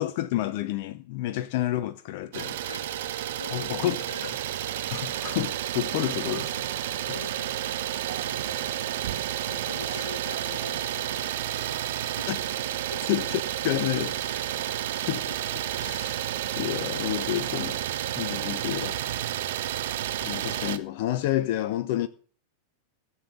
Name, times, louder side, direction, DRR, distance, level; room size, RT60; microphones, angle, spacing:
voice 1, 0.0-2.6 3.5-4.3 4.9-6.7 12.3-12.4 13.1-14.5 15.1-15.4 15.8-16.2 16.6-17.8 18.2-19.0 20.2-22.1, left 13 dB, 50° left, 0.8 m, -30 dB
Idling, 2.3-20.8, right 12 dB, 55° right, 1.1 m, -31 dB
voice 2, 2.7-4.3 7.1-12.3 12.8-13.0, left 3 dB, 80° left, 1.4 m, -45 dB
16.5 x 7.3 x 7.8 m
figure-of-eight pair, 90°, 0 cm